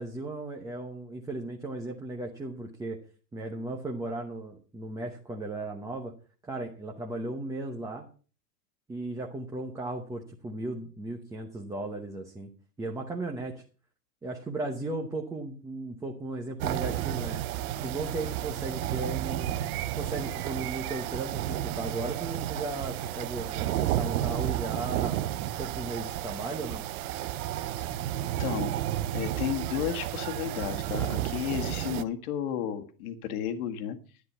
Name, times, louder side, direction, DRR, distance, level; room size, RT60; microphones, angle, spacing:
voice 1, 0.0-3.0 3.3-6.1 6.4-8.1 8.9-12.5 12.8-13.6 14.2-17.4 17.8-19.6 19.9-25.2 25.6-26.8, right 2 dB, 5° right, 1 dB, 0.9 m, -36 dB
sound 1, 16.6-32.0, right 13 dB, 60° right, 0.8 m, -32 dB
voice 2, 28.4-28.7 29.1-34.0, left 10 dB, 60° left, 7 dB, 1.8 m, -33 dB
10.5 x 10.5 x 5.6 m, 0.38 s
supercardioid pair, 155°, 50 cm